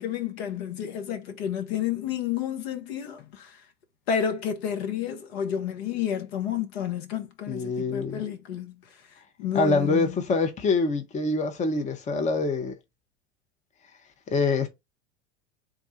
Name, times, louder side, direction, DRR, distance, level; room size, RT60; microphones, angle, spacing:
voice 1, 0.0-3.6 4.1-8.7 9.4-10.2, left 8 dB, 60° left, 1.1 m, -30 dB
voice 2, 7.5-8.3 9.5-12.8 14.3-14.7, left 3 dB, 20° left, 0.8 m, -25 dB
3.7 x 2.4 x 4.2 m
hypercardioid pair, 85°, 35 cm